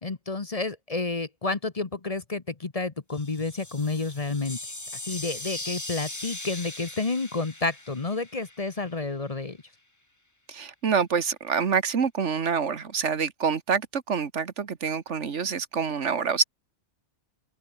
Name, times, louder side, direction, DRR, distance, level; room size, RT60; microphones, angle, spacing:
voice 1, 0.0-4.6 5.0-9.6, left 3 dB, 30° left, 1.1 m, -30 dB
sound 1, 3.1-9.0, left 2 dB, 15° left, 1.6 m, -39 dB
voice 2, 10.5-16.4, right 6 dB, 80° right, 1.7 m, -26 dB
omnidirectional pair, 1.2 m